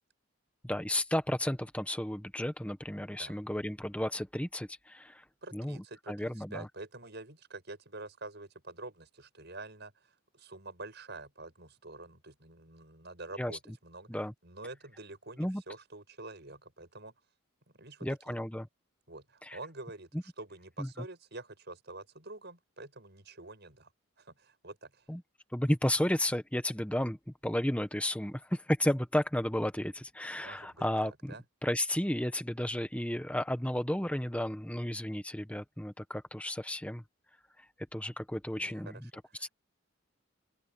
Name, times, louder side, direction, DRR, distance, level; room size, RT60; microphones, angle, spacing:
voice 1, 0.6-5.2 5.5-5.8 6.1-6.7 13.4-13.5 14.1-14.3 15.4-15.6 18.0-18.7 19.5-19.6 20.8-20.9 25.1-25.2 25.5-27.2 27.4-31.3 31.6-37.0 37.9-39.1 39.4-39.5, left 1 dB, 5° left, 1.1 m, -33 dB
voice 2, 5.4-14.1 14.4-17.1 17.7-18.4 19.1-23.9 24.2-25.1 30.4-31.4 38.6-39.5, right 2 dB, 50° right, 7.3 m, -47 dB
open air
head